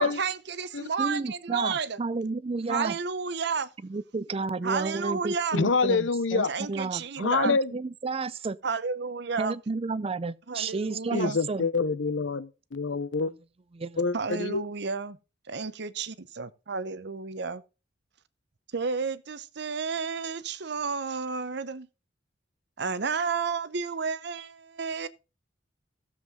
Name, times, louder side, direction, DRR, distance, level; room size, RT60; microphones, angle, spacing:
voice 1, 0.0-2.0 2.7-3.7 4.6-5.6 6.5-7.5 8.6-9.5 10.5-11.4 14.1-15.2 15.5-17.6 18.7-21.9 22.8-25.1, right 5 dB, 60° right, 0.8 m, -31 dB
voice 2, 1.0-3.0 3.8-8.6 9.4-11.7 13.7-14.0, right 3 dB, 30° right, 0.4 m, -32 dB
voice 3, 5.5-6.5 7.2-7.7 11.1-13.3 14.0-14.6, left 4 dB, 85° left, 0.8 m, -26 dB
15.5 x 7.5 x 3.8 m
head